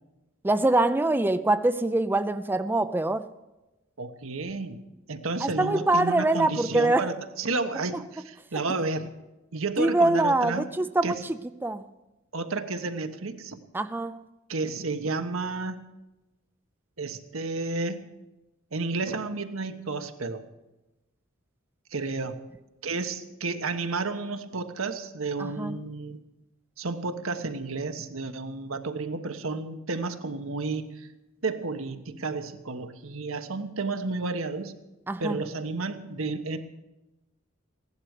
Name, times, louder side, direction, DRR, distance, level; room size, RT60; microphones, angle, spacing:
voice 1, 0.4-3.2 5.4-7.1 9.8-11.2 11.6-11.8 13.7-14.2 25.4-25.8 35.1-35.4, right 2 dB, 10° right, 11 dB, 0.4 m, -24 dB
voice 2, 4.0-4.8 5.1-9.1 9.5-10.7 11.0-11.2 12.3-13.6 14.5-15.8 17.0-18.1 18.7-20.4 21.9-22.4 22.8-26.2 26.8-31.1 31.4-34.7 35.2-36.6, right 3 dB, 80° right, 7 dB, 1.2 m, -31 dB
16.0 x 11.5 x 6.6 m, 1.0 s
head